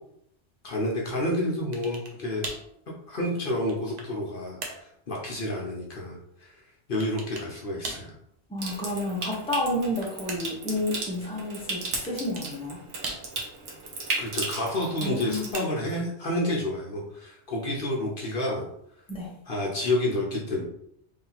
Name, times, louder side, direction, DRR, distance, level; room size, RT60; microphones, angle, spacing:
voice 1, 0.6-2.4 3.1-6.5 6.9-8.1 14.2-18.7 19.5-20.6, left 1 dB, 55° left, -2 dB, 0.9 m, -29 dB
sound 1, 1.7-2.2 2.4-2.7 3.4-4.2 4.6-4.9 7.0-7.5 7.8-8.1 9.5-10.6 12.0-12.6 13.0-13.6 15.0-16.0, right 2 dB, 45° right, 0.7 m, -39 dB
voice 2, 8.5-12.8 15.0-15.5 19.1-19.3, left 1 dB, 5° left, -3 dB, 0.8 m, -30 dB
Water tap faucet / Sink (filling or washing) / Trickle dribble, 8.6-15.5, right 3 dB, 85° right, 1.2 m, -35 dB
3.2 x 2.8 x 4.0 m, 0.72 s
omnidirectional pair, 1.2 m